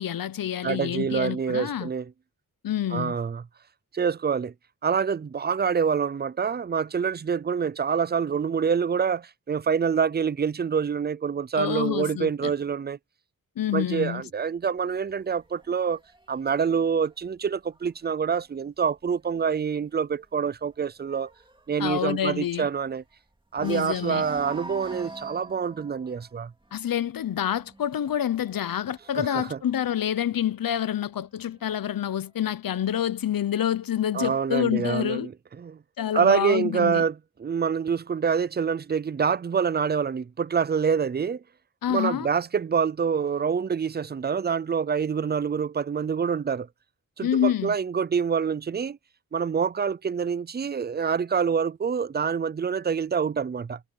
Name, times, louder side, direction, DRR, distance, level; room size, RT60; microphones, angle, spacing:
voice 1, 0.0-1.9 2.6-3.2 11.5-12.5 13.6-14.2 21.8-22.7 23.6-24.2 26.7-35.3 36.0-37.0 41.8-42.3 47.2-47.7, left 10 dB, 75° left, 0.8 m, -27 dB
voice 2, 0.6-2.1 2.9-3.4 3.9-4.5 4.8-13.0 13.7-16.0 16.3-21.3 21.7-23.0 23.5-26.5 29.2-29.6 34.1-35.3 35.6-35.8 36.1-41.4 41.9-46.7 47.2-49.0 49.3-53.8, right 6 dB, 30° right, 0.4 m, -26 dB
sound 1, 14.8-18.4 18.8-19.1 19.4-19.5 19.9-23.1 23.5-30.1 30.9-31.9, right 2 dB, 15° right, 2.6 m, -46 dB
wide cardioid pair, 145°, 35 cm